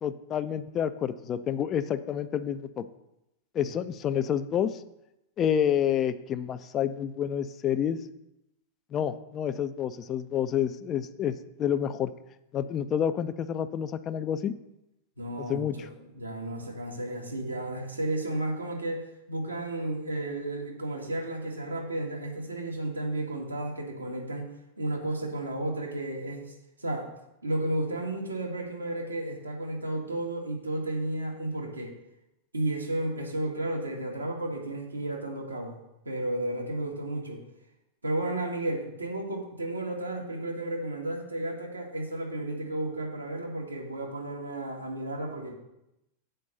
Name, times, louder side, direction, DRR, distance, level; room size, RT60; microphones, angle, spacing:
voice 1, 0.0-2.8 3.5-4.8 5.4-8.0 8.9-12.1 12.5-14.5 15.4-15.9, left 9 dB, 30° left, 12 dB, 0.5 m, -29 dB
voice 2, 15.2-24.5 24.8-26.4 26.8-27.1 27.4-32.0 32.5-35.8 36.0-37.4 38.0-45.5, right 1 dB, 85° right, 1 dB, 1.7 m, -33 dB
7.7 x 5.2 x 6.7 m, 0.88 s
figure-of-eight pair, 90°, 0 cm